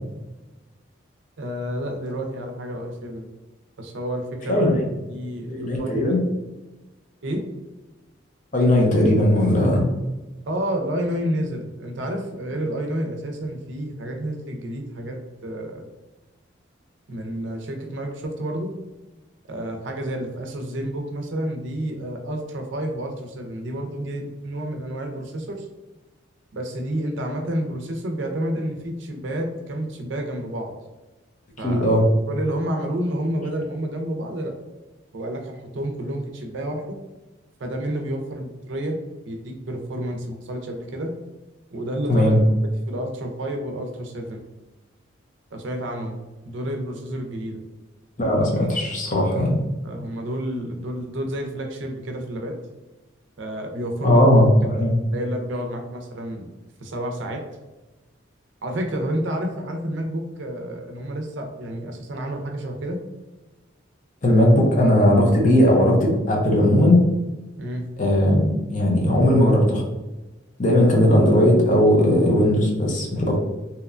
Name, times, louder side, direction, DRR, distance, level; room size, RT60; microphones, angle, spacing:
voice 1, 1.4-3.3 3.8-4.7 5.1-6.2 7.2-7.4 10.5-15.2 15.4-15.8 17.1-18.7 19.5-25.7 26.5-30.7 31.6-31.9 32.3-34.5 35.1-37.0 37.6-39.0 39.3-41.1 41.7-42.3 42.9-44.4 45.5-46.2 46.5-47.6 49.8-52.5 53.4-54.2 55.1-56.5 56.8-57.4 58.6-63.0 67.6-67.8, right 1 dB, 70° right, 3 dB, 0.5 m, -29 dB
voice 2, 4.5-4.8 5.5-6.2 8.5-9.9 31.6-32.0 42.1-42.4 48.2-49.6 54.0-55.0 64.2-67.0 68.0-69.8 70.6-73.4, left 1 dB, 40° left, -1 dB, 0.5 m, -18 dB
2.8 x 2.1 x 2.4 m, 1.1 s
head